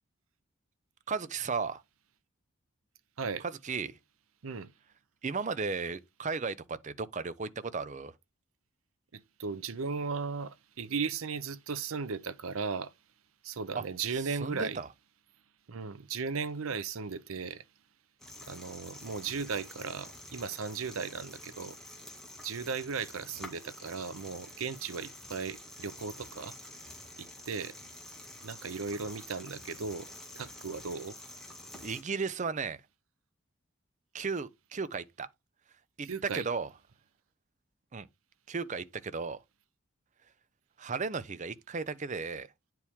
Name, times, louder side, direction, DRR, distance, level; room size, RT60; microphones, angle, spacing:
voice 1, 1.1-1.8 3.6-3.9 5.2-8.1 13.8-13.9 14.2-14.9 31.8-32.8 34.1-35.3 36.0-36.7 37.9-38.1 38.5-39.4 40.8-42.5, right 4 dB, 35° right, 0.5 m, -35 dB
voice 2, 9.1-12.9 13.4-14.8 15.7-17.6 18.5-21.8 22.4-26.5 27.2-27.8 28.4-31.2 36.0-36.5, right 5 dB, 80° right, 0.7 m, -36 dB
sound 1, 18.2-32.0, left 1 dB, ahead, 1.8 m, -48 dB
9.8 x 4.5 x 3.6 m
head